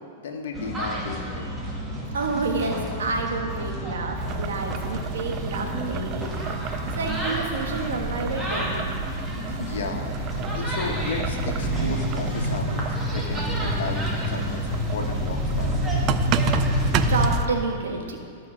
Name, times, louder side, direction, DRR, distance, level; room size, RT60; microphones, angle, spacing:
voice 1, 0.2-1.5 9.5-15.8, left 4 dB, 80° left, 3 dB, 1.4 m, -34 dB
sound 1, 0.5-17.3, equal, 15° right, 2.0 m, -28 dB
voice 2, 2.1-6.3 6.8-8.9 17.1-18.2, right 3 dB, 90° right, 2 dB, 1.4 m, -29 dB
Boiling, 4.2-17.5, right 11 dB, 40° right, 0.4 m, -34 dB
13.0 x 5.4 x 6.3 m, 2.4 s
hypercardioid pair, 130°, 0 cm